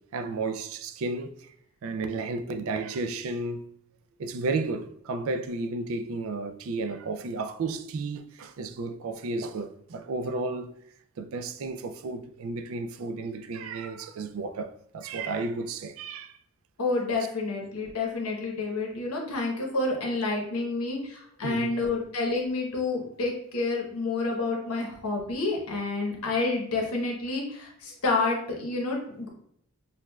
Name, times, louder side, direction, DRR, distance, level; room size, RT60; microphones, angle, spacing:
voice 1, 0.1-1.3 1.8-3.7 4.2-10.7 11.2-16.3 21.4-21.7, right 3 dB, 70° right, 0.4 m, -33 dB
voice 2, 16.8-29.3, left 3 dB, 85° left, 1.0 m, -29 dB
6.2 x 2.3 x 2.2 m
head